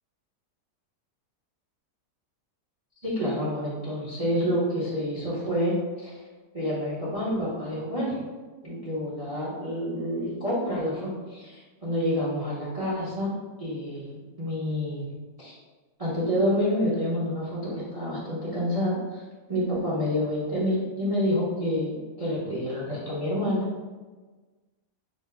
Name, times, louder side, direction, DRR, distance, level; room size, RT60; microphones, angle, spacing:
voice 1, 3.0-6.2 6.5-8.2 8.6-13.3 13.6-15.1 15.4-15.5 16.0-19.2 19.5-23.9, equal, 30° right, -9 dB, 0.8 m, -28 dB
5.2 x 2.1 x 3.5 m, 1.3 s
omnidirectional pair, 1.8 m